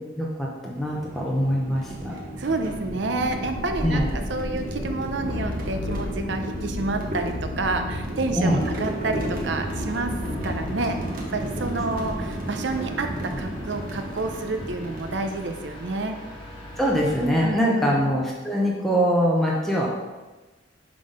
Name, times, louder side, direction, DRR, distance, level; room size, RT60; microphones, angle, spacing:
voice 1, 0.0-2.2 3.8-4.1 8.4-8.6 16.8-19.9, equal, ahead, -4 dB, 0.6 m, -23 dB
sound 1, 0.8-15.8, right 1 dB, 45° right, 1.1 m, -32 dB
voice 2, 2.4-10.2 10.4-11.0 11.3-16.1 17.4-18.0, right 3 dB, 70° right, 6 dB, 0.6 m, -29 dB
sound 2, 5.2-8.3 8.6-11.1, left 4 dB, 80° left, 0.5 m, -35 dB
sound 3, 9.5-17.5, equal, 25° left, 1.3 m, -41 dB
5.9 x 3.7 x 5.0 m, 1.2 s
head